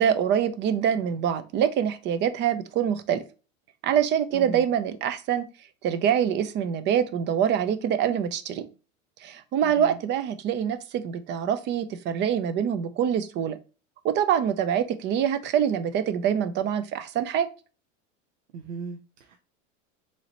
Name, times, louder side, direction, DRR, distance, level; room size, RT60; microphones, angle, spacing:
voice 1, 0.0-3.2 3.8-5.4 5.8-8.7 9.2-13.6 14.0-17.5, right 9 dB, 30° right, 0.4 m, -25 dB
voice 2, 4.3-4.6 9.6-10.0 18.5-19.4, right 5 dB, 85° right, 0.6 m, -38 dB
3.9 x 3.1 x 2.7 m
supercardioid pair, 120°, 37 cm